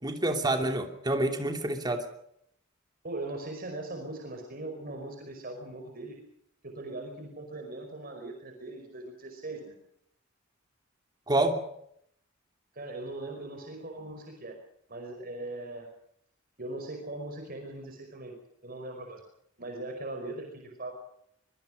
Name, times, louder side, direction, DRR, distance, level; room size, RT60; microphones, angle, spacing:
voice 1, 0.0-2.0 11.3-11.6, right 1 dB, 20° right, 5 dB, 2.8 m, -27 dB
voice 2, 3.0-6.2 6.6-9.8 12.7-14.6 14.9-15.9 16.6-18.3 18.6-19.2 19.6-20.9, right 2 dB, 50° right, 3 dB, 5.2 m, -40 dB
25.0 x 23.0 x 5.2 m, 0.72 s
head